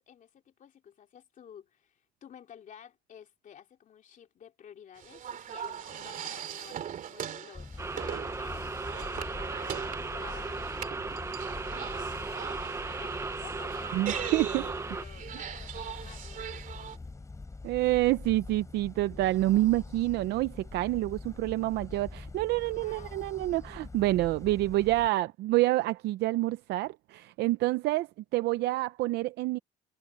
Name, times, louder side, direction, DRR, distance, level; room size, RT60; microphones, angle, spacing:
voice 1, 0.0-17.3 22.6-23.2, left 8 dB, 50° left, 2.9 m, -53 dB
sound 1, 5.0-17.0, right 9 dB, 50° right, 2.8 m, -40 dB
sound 2, 7.5-25.1, left 3 dB, 20° left, 4.0 m, -44 dB
sound 3, 7.8-15.0, right 3 dB, 15° right, 0.6 m, -36 dB
voice 2, 13.9-14.6 17.6-29.6, right 17 dB, 80° right, 0.6 m, -28 dB
cardioid pair, 110°, 17 cm